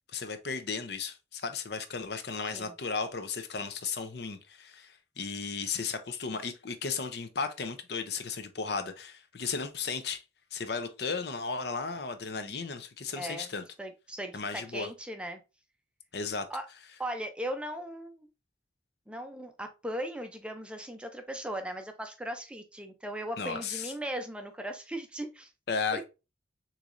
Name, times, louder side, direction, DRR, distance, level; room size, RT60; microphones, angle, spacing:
voice 1, 0.1-10.2 10.5-13.6 14.3-14.9 16.1-16.5 23.4-23.9 25.7-26.0, left 5 dB, 60° left, 0.6 m, -35 dB
voice 2, 13.2-13.5 13.8-15.4 16.5-16.7 17.0-18.3 19.1-25.5 25.9-26.0, right 1 dB, 5° right, 0.4 m, -38 dB
6.5 x 3.1 x 2.5 m
head